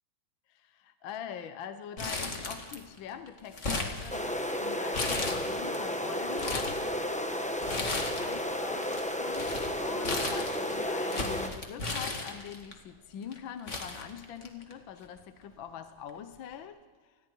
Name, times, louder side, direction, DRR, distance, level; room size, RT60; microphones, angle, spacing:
voice 1, 0.5-6.8 7.7-16.8, left 8 dB, 70° left, 9 dB, 1.6 m, -43 dB
Crumpling crinkling, 2.0-3.0 3.3-4.5 4.9-5.8 6.2-6.8 7.6-8.4 8.7-12.7 13.3-13.4 13.7-14.7 15.0-15.1 16.1-16.3, left 3 dB, 35° left, 2.3 m, -35 dB
sound 1, 4.1-11.5, equal, 5° left, 0.6 m, -32 dB
29.5 x 20.5 x 4.5 m, 1.4 s
omnidirectional pair, 2.3 m